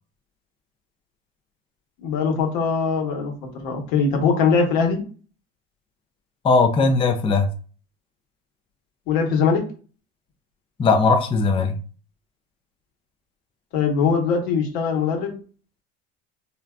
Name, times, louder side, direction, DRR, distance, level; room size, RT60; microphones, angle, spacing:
voice 1, 2.0-3.3 3.6-5.0 9.1-9.6 13.7-15.4, left 5 dB, 80° left, 1.1 m, -21 dB
voice 2, 6.4-7.5 10.8-11.8, left 4 dB, 20° left, 0.4 m, -18 dB
3.8 x 2.2 x 2.3 m
supercardioid pair, 90°, 31 cm